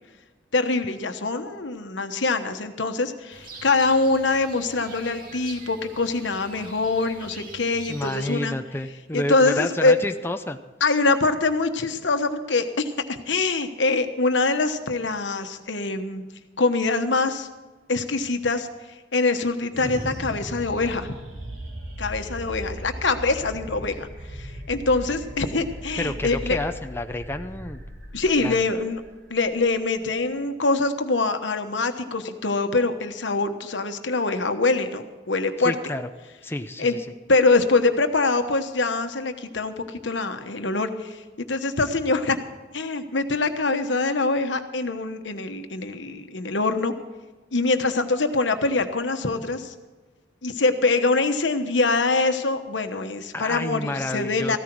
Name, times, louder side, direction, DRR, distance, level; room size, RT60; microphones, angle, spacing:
voice 1, 0.5-8.5 9.1-9.9 10.8-16.2 16.6-17.5 17.9-18.7 19.1-21.1 22.0-26.6 28.1-29.0 29.3-35.8 36.8-37.0 37.3-42.4 42.7-46.9 47.5-49.7 50.4-54.6, left 3 dB, 80° left, 7 dB, 1.2 m, -24 dB
sound 1, 3.3-8.4, right 3 dB, 50° right, 2.3 m, -44 dB
voice 2, 7.9-10.6 26.0-27.8 28.4-28.6 35.6-36.1 36.4-37.0 53.3-54.6, left 1 dB, 15° left, 6 dB, 0.6 m, -30 dB
sound 2, 19.7-30.4, right 1 dB, 90° right, 3.8 m, -37 dB
15.0 x 13.5 x 4.7 m, 1.3 s
head